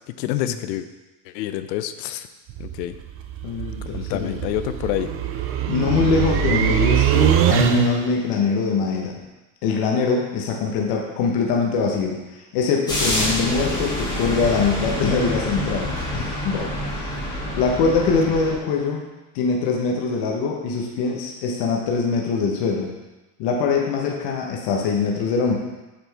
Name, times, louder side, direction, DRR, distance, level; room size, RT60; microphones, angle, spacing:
voice 1, 0.1-0.9 1.3-2.3 2.6-3.0 3.9-5.1, left 13 dB, 85° left, 11 dB, 0.6 m, -27 dB
sound 1, 2.5-8.2, right 9 dB, 30° right, 0.3 m, -22 dB
voice 2, 3.4-4.3 5.7-9.2 9.6-17.2 17.5-19.0 19.3-22.9 23.4-25.6, left 4 dB, 55° left, 0 dB, 1.1 m, -23 dB
sound 2, 12.9-18.5, left 1 dB, 10° left, 1.8 m, -27 dB
7.7 x 4.3 x 3.4 m, 1.1 s
supercardioid pair, 130°, 49 cm